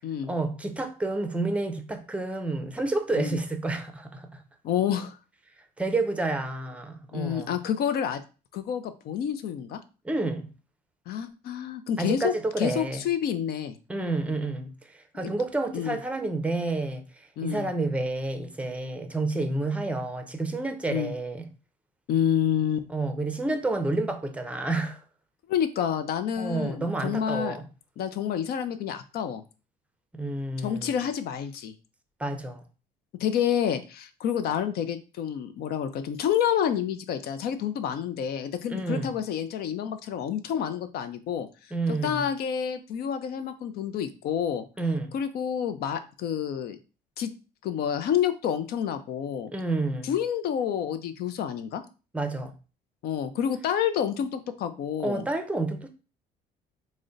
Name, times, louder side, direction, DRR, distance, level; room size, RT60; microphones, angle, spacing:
voice 1, 0.3-4.4 5.8-7.5 10.0-10.5 12.0-13.0 13.9-21.4 22.9-25.0 26.4-27.6 30.1-30.9 32.2-32.6 38.7-39.1 41.7-42.2 44.8-45.1 49.5-50.1 52.1-52.5 55.0-55.9, right 2 dB, 5° right, 0.5 m, -29 dB
voice 2, 4.6-5.2 7.1-8.2 8.5-9.8 11.1-13.8 15.2-15.3 15.7-16.0 17.4-17.7 20.9-21.1 22.1-22.9 25.5-27.6 28.0-29.4 30.6-31.7 33.2-41.5 41.9-44.6 45.1-46.8 47.2-47.3 47.6-49.5 50.0-51.8 53.0-55.2, left 9 dB, 70° left, 0.5 m, -28 dB
3.7 x 2.1 x 3.8 m
cardioid pair, 110°, 17 cm